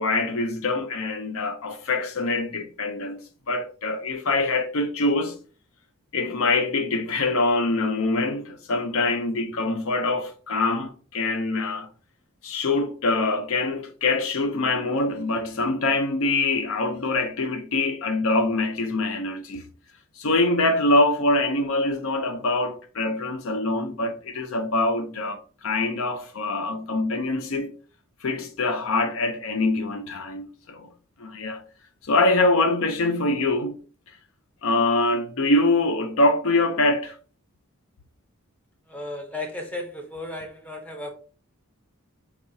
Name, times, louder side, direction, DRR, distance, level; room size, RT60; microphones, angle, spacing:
voice 1, 0.0-3.2 3.5-5.4 6.1-11.9 12.4-19.6 20.2-27.7 28.2-30.9 31.2-31.6 32.0-33.7 34.6-37.2, left 2 dB, 65° left, 0.6 m, -24 dB
voice 2, 38.9-41.1, left 2 dB, 5° left, 0.6 m, -34 dB
4.7 x 2.4 x 2.7 m
head